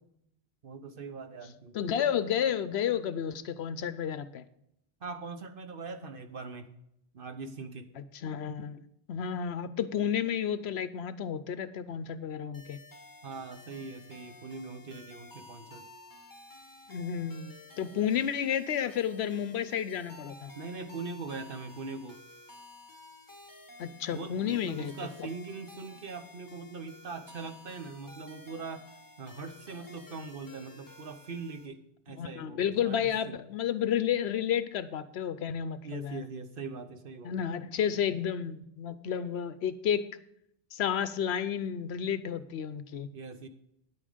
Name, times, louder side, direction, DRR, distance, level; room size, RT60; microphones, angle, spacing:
voice 1, 0.6-1.8 5.0-6.7 7.1-7.9 13.2-15.9 20.5-22.2 24.1-28.9 29.2-33.4 35.8-37.5 43.1-43.5, right 4 dB, 55° right, 9 dB, 1.0 m, -41 dB
voice 2, 1.7-4.4 8.0-8.8 9.1-12.8 16.9-20.5 23.8-24.9 32.2-36.3 37.2-40.1 40.7-43.1, left 8 dB, 70° left, 14 dB, 0.8 m, -31 dB
sound 1, 12.5-31.7, left 1 dB, 20° left, 1.2 m, -52 dB
9.7 x 8.8 x 5.0 m, 0.77 s
omnidirectional pair, 1.2 m